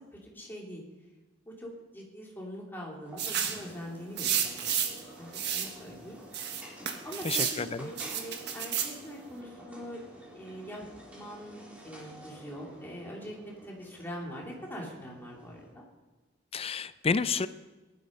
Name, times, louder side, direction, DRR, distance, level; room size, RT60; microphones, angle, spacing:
voice 1, 0.1-0.8 1.4-4.9 5.2-6.2 7.0-10.0 10.3-10.8 11.1-15.8, equal, 10° left, -3 dB, 3.2 m, -43 dB
sound 1, 3.1-15.7, equal, 5° right, 4.1 m, -50 dB
sound 2, 3.2-3.6 4.2-5.0 5.3-5.7 6.3-7.6 8.0-8.9, right 8 dB, 60° right, 1.5 m, -31 dB
voice 2, 7.2-7.9 16.5-17.5, left 5 dB, 30° left, 14 dB, 0.4 m, -30 dB
18.5 x 11.5 x 5.3 m, 1.2 s
head